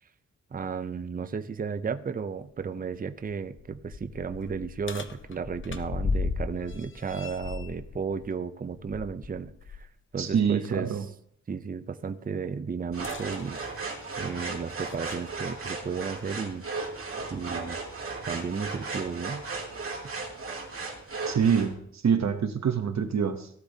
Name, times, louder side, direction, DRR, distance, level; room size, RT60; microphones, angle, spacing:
voice 1, 0.5-9.9 10.1-11.0 11.5-13.6 13.9-16.7 17.3-17.8 18.3-19.4, right 5 dB, 30° right, 12 dB, 0.5 m, -34 dB
sound 1, 3.5-9.9 10.3-10.5 12.9-15.3 16.3-16.4 17.2-17.3, left 4 dB, 45° left, 0.7 m, -37 dB
voice 2, 10.2-11.1 21.3-23.5, right 7 dB, 65° right, 7 dB, 0.8 m, -25 dB
sound 2, 12.9-21.7, right 3 dB, 50° right, 2.4 m, -36 dB
17.0 x 11.5 x 2.7 m, 0.68 s
wide cardioid pair, 175°, 29 cm